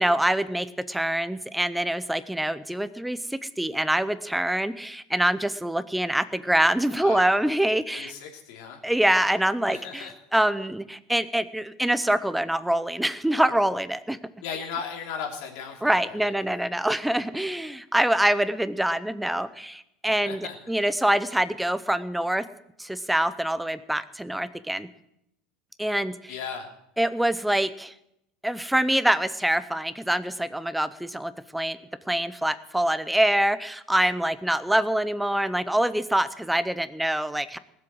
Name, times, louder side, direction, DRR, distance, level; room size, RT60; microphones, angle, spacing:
voice 1, 0.0-8.1 8.8-14.2 15.8-22.4 22.8-24.9 25.8-26.3 27.0-27.9 28.4-31.8 32.1-37.6, right 1 dB, 5° right, 14 dB, 0.6 m, -25 dB
voice 2, 6.9-7.3 7.9-8.8 9.7-10.1 14.4-16.3 20.2-20.6 26.3-26.7, left 6 dB, 60° left, 1 dB, 3.2 m, -36 dB
19.5 x 7.7 x 7.7 m, 0.80 s
cardioid pair, 160°, 0 cm